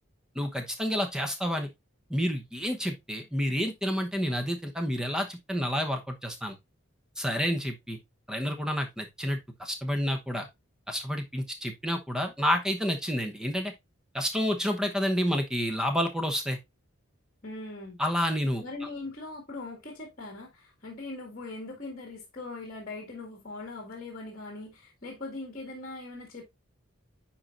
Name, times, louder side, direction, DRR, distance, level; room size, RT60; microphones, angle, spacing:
voice 1, 0.3-1.7 2.1-6.6 7.2-8.0 8.3-10.5 10.9-13.7 14.1-16.6 18.0-18.6, equal, 5° right, 0.9 m, -29 dB
voice 2, 17.4-18.0 18.6-26.4, left 2 dB, 40° left, 1.7 m, -40 dB
9.6 x 4.4 x 2.5 m
head